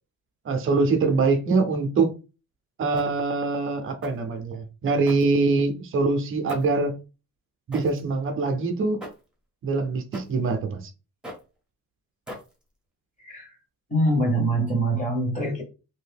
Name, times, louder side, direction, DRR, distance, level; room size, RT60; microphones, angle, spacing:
voice 1, 0.4-2.1 2.8-7.0 7.7-9.0 9.6-10.9, right 3 dB, 40° right, 0.6 m, -24 dB
sound 1, 3.0-3.3 4.0-4.3 5.0-5.7 6.5-6.9 7.7-8.1 9.0-9.3 10.1-10.5 11.2-11.6 12.3-12.7, equal, 5° right, 0.9 m, -41 dB
voice 2, 13.2-13.6 13.9-15.6, right 1 dB, 25° left, 1.3 m, -24 dB
2.8 x 2.6 x 3.5 m
cardioid pair, 165°, 32 cm